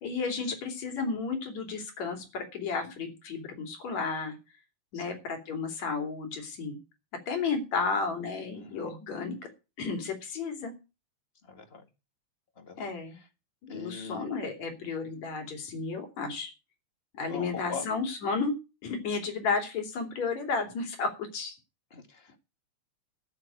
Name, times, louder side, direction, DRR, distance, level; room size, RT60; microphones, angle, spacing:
voice 1, 0.0-4.4 4.9-6.8 7.3-9.5 9.8-10.7 12.8-13.2 13.6-16.5 17.2-18.6 18.8-21.6, left 4 dB, 65° left, 6 dB, 4.1 m, -33 dB
voice 2, 8.5-8.9 11.5-11.9 12.6-13.3 13.7-14.4 17.3-17.9 21.9-22.4, left 4 dB, 25° left, 8 dB, 1.5 m, -42 dB
12.5 x 6.5 x 9.0 m, 0.29 s
omnidirectional pair, 3.4 m